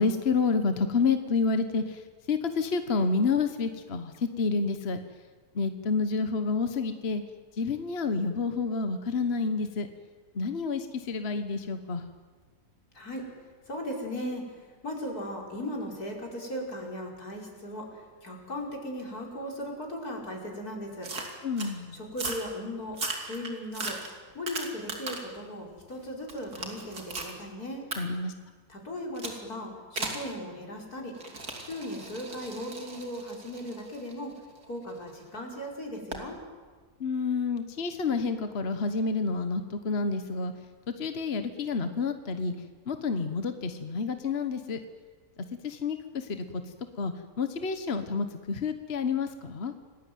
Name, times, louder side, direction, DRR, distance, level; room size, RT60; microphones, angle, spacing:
voice 1, 0.0-5.0 5.5-7.2 7.6-9.9 10.3-12.0 21.4-22.0 28.0-28.3 37.0-40.5 41.0-42.5 42.9-44.8 45.6-46.6 47.0-49.7, left 4 dB, 45° left, 9 dB, 1.4 m, -29 dB
voice 2, 12.9-13.3 13.7-14.4 14.8-17.9 18.2-21.1 21.9-24.0 24.3-27.9 28.7-31.1 31.6-34.3 34.7-36.4, left 1 dB, 80° left, 0 dB, 5.6 m, -37 dB
sound 1, 21.0-21.7 22.1-22.5 22.9-25.4 25.8-27.3 27.9-28.0 29.2-29.4 30.0-30.3 31.1-35.1 36.1-36.3, right 3 dB, 85° right, 3.8 m, -37 dB
29.0 x 20.0 x 9.3 m, 1.5 s
omnidirectional pair, 1.6 m